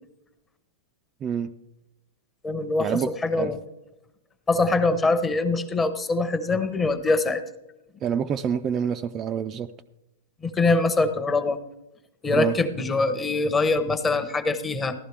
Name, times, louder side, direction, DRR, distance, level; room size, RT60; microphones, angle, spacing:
voice 1, 1.2-1.5 2.8-3.1 3.4-3.5 8.0-9.7 12.3-12.5, right 8 dB, 25° right, 0.4 m, -27 dB
voice 2, 2.4-3.6 4.5-7.4 10.4-11.6 12.2-14.9, left 3 dB, 15° left, 0.8 m, -23 dB
14.0 x 11.5 x 3.4 m
hypercardioid pair, 140°, 0 cm